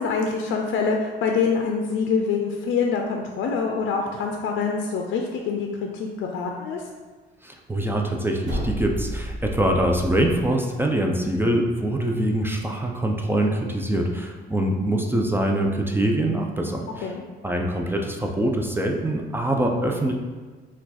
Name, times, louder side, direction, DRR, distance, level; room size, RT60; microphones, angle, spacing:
voice 1, 0.0-6.8 17.0-17.2, left 5 dB, 70° left, 2 dB, 0.4 m, -25 dB
voice 2, 7.4-17.1 17.4-20.1, right 1 dB, 10° right, 1 dB, 0.4 m, -24 dB
sound 1, 8.4-10.5, right 1 dB, 90° right, 1.2 m, -31 dB
4.4 x 2.4 x 4.1 m, 1.4 s
cardioid pair, 90°, 20 cm